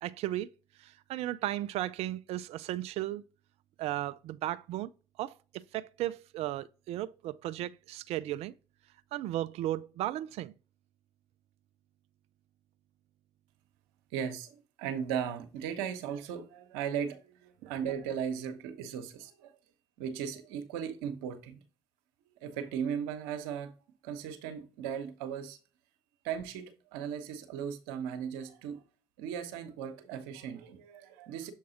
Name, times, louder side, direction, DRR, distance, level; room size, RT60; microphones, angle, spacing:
voice 1, 0.0-0.5 0.8-3.2 3.8-4.9 5.2-5.3 5.7-8.5 9.1-10.5 17.6-17.7, right 14 dB, 65° right, 0.4 m, -35 dB
voice 2, 14.1-19.5 20.0-21.6 22.4-23.7 24.0-25.6 26.2-28.8 29.2-31.5, right 8 dB, 80° right, 1.1 m, -37 dB
7.2 x 4.6 x 2.9 m
hypercardioid pair, 60°, 11 cm